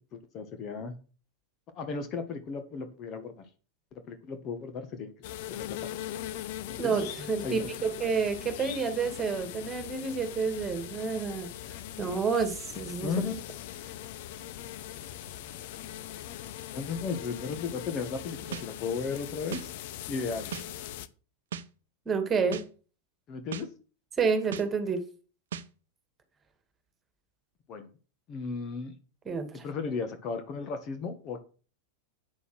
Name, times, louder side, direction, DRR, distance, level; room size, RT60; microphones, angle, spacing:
voice 1, 0.1-0.9 1.7-3.5 4.1-5.1 5.6-6.0 6.8-7.0 7.4-7.6 13.0-13.4 16.7-19.7 20.1-20.5 23.3-23.7 27.7-27.9 28.3-28.9 29.6-31.4, left 5 dB, 35° left, 8 dB, 1.6 m, -35 dB
sound 1, 5.2-21.1, left 12 dB, 50° left, 0.8 m, -41 dB
voice 2, 6.8-13.1 22.1-22.6 24.2-25.0 29.3-29.7, right 5 dB, 20° right, 8 dB, 2.3 m, -29 dB
sound 2, 18.5-18.7 19.5-19.7 20.5-20.7 21.5-21.7 22.5-22.7 23.5-23.7 24.5-24.7 25.5-25.7, right 8 dB, 60° right, 0.9 m, -36 dB
8.9 x 7.1 x 6.1 m, 0.36 s
figure-of-eight pair, 90°, 0 cm